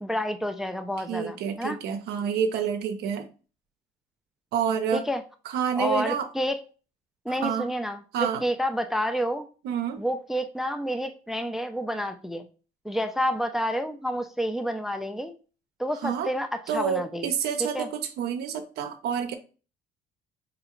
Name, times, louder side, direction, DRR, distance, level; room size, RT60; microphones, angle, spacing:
voice 1, 0.0-1.8 4.9-5.2 5.8-6.6 7.3-9.4 10.0-12.5 12.8-15.3 15.8-17.3 17.6-17.9, equal, ahead, 0.3 m, -29 dB
voice 2, 1.1-3.3 4.5-5.1 5.5-6.3 7.3-7.7 8.1-8.4 9.6-10.0 15.9-16.3 16.7-19.3, right 7 dB, 75° right, 0.6 m, -28 dB
5.0 x 2.3 x 2.9 m
cardioid pair, 110°, 17 cm